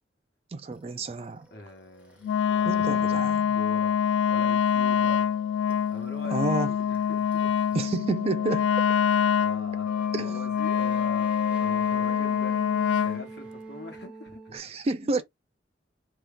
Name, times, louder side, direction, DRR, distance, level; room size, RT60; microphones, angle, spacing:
voice 1, 0.5-1.5 2.7-3.4 6.3-6.7 7.7-8.7 10.1-10.4 14.5-15.2, right 3 dB, 35° right, 0.3 m, -29 dB
sound 1, 0.7-7.9 8.2-14.6, right 3 dB, 5° right, 0.7 m, -47 dB
voice 2, 1.5-4.0 4.3-5.3 5.9-7.6 8.7-8.8 9.4-9.9 10.2-11.3 11.6-14.6 15.1-15.2, left 1 dB, 60° left, 1.1 m, -43 dB
Wind instrument woodwind instrument, 2.2-13.2, left 8 dB, 80° left, 0.3 m, -25 dB
2.8 x 2.3 x 3.2 m
head